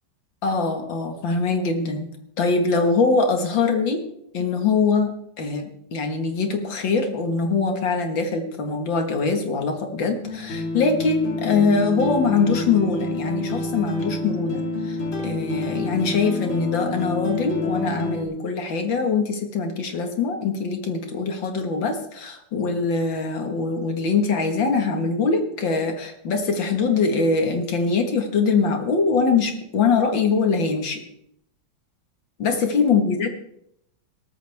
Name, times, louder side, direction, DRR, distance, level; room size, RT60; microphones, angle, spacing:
voice 1, 0.4-2.1 2.4-4.1 4.3-15.0 15.2-31.0 32.4-33.3, left 4 dB, 65° left, 5 dB, 2.5 m, -23 dB
sound 1, 10.2-18.2, left 2 dB, 80° left, 3.2 m, -28 dB
17.5 x 14.0 x 3.6 m, 0.74 s
omnidirectional pair, 2.2 m